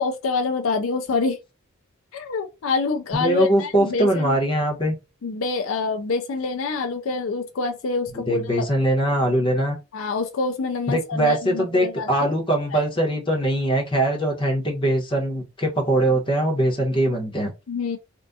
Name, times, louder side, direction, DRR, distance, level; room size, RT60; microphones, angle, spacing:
voice 1, 0.0-1.4 2.1-4.4 5.2-8.7 9.9-12.3 12.7-12.8 17.7-18.0, left 4 dB, 70° left, 0.4 m, -26 dB
voice 2, 3.1-4.9 8.3-9.8 10.9-17.5, right 1 dB, 25° left, 1.1 m, -22 dB
3.5 x 2.4 x 2.6 m
head